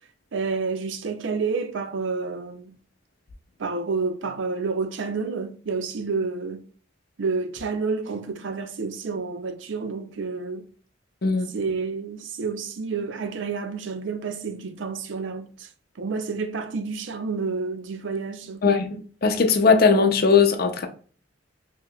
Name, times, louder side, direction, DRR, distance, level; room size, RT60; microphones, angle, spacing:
voice 1, 0.3-2.7 3.6-6.6 7.2-10.6 11.5-15.7 16.0-18.6, right 4 dB, 70° right, 0.5 m, -29 dB
voice 2, 18.6-20.9, left 5 dB, 55° left, 0.6 m, -19 dB
4.7 x 2.8 x 2.3 m
head